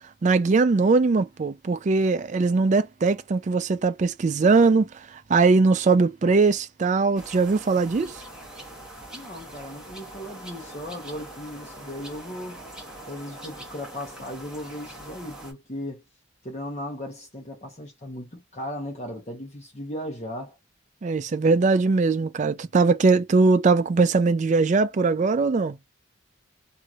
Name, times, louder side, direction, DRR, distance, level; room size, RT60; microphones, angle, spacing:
voice 1, 0.2-8.2 21.0-25.8, right 4 dB, 35° right, 0.3 m, -21 dB
sound 1, 7.2-15.5, right 1 dB, 5° right, 1.1 m, -42 dB
voice 2, 9.1-12.6 13.1-16.0 16.4-20.6, left 1 dB, 35° left, 1.0 m, -37 dB
2.9 x 2.7 x 2.4 m
head